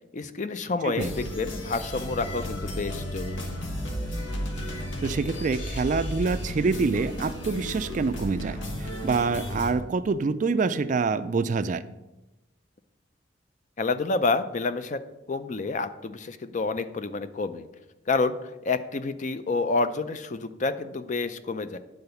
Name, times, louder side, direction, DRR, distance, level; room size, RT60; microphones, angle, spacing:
voice 1, 0.1-3.5 13.8-15.0 15.3-17.7 18.1-18.4 18.6-21.8, left 3 dB, 40° left, 11 dB, 0.5 m, -28 dB
sound 1, 1.0-9.7, equal, 85° left, 1.3 m, -34 dB
voice 2, 5.0-11.8, right 4 dB, 40° right, 13 dB, 0.3 m, -26 dB
9.7 x 3.9 x 6.8 m, 0.98 s
head